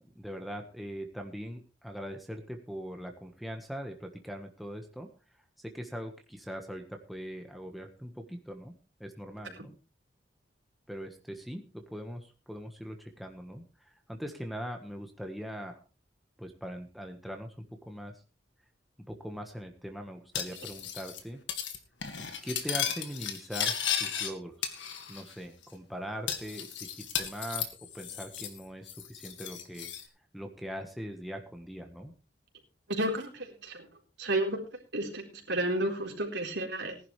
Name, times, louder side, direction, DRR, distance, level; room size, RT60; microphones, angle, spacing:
voice 1, 0.0-5.1 5.6-8.7 9.0-9.7 10.9-15.8 16.4-18.1 19.1-21.4 22.4-24.7 25.1-29.9 30.3-32.1, equal, ahead, 3 dB, 1.4 m, -41 dB
Cutlery silverware, 20.3-21.2 21.5-21.8 22.0-24.3 24.6-25.3 25.6-25.7 26.3-28.6 28.9-30.0, left 8 dB, 85° left, 2.1 m, -35 dB
voice 2, 32.9-33.9 34.2-34.6 34.9-37.0, right 1 dB, 75° right, 1 dB, 4.1 m, -32 dB
19.0 x 11.0 x 3.3 m, 0.32 s
head